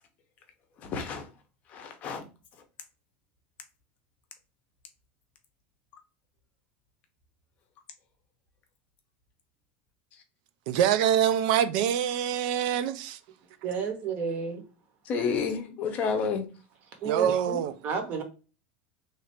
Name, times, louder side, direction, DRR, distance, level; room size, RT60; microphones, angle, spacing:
voice 1, 0.8-1.3 1.7-2.2 15.1-16.5, left 5 dB, 30° left, 0.7 m, -30 dB
voice 2, 10.7-13.2 17.0-17.7, right 9 dB, 55° right, 0.4 m, -25 dB
voice 3, 13.6-14.6 17.0-18.2, right 6 dB, 30° right, 0.8 m, -31 dB
3.1 x 2.5 x 4.3 m
supercardioid pair, 170°, 5 cm